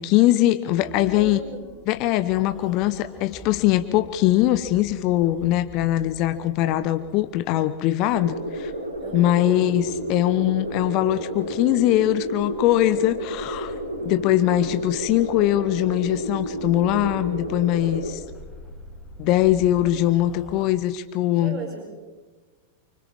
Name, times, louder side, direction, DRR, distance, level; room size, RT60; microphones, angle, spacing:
voice 1, 0.0-1.4 1.9-8.7 9.1-13.7 14.0-18.2 19.2-21.6, left 14 dB, 40° left, 11 dB, 1.0 m, -21 dB
sound 1, 0.7-20.6, left 2 dB, 10° left, 2.6 m, -45 dB
voice 2, 0.8-1.8 9.0-9.6 14.4-14.8 19.7-19.9 21.4-21.9, right 5 dB, 30° right, -2 dB, 6.9 m, -38 dB
sound 2, 8.1-18.1, right 1 dB, 85° right, 4.2 m, -31 dB
29.5 x 25.0 x 3.7 m, 1.3 s
figure-of-eight pair, 95°, 0 cm